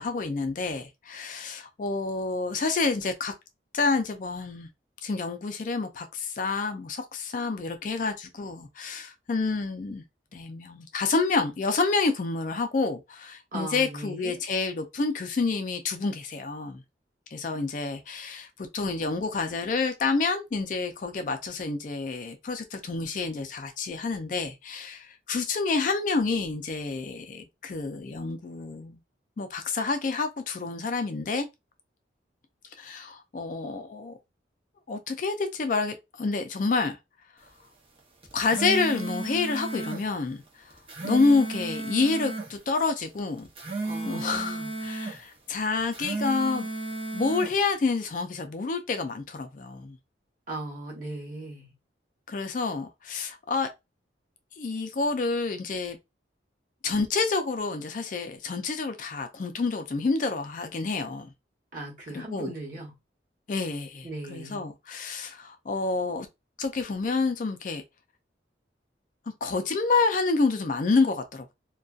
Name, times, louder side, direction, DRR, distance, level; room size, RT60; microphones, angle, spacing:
voice 1, 0.0-3.3 3.7-4.7 5.0-10.0 10.3-16.8 17.3-29.0 29.4-31.5 32.8-34.1 34.9-37.0 38.3-40.4 41.0-43.5 44.0-46.7 47.1-50.0 52.3-53.7 54.6-56.0 56.8-61.3 62.1-62.5 63.5-66.3 66.6-67.8 69.4-71.5, left 4 dB, 45° left, 0.3 m, -28 dB
voice 2, 13.5-14.4 43.8-44.7 50.5-51.7 61.7-62.9 64.0-64.7, right 2 dB, 45° right, 1.0 m, -38 dB
sound 1, 38.2-40.0 40.7-42.5 43.4-45.2 45.8-47.5, right 2 dB, 30° right, 0.6 m, -33 dB
2.5 x 2.2 x 2.3 m
head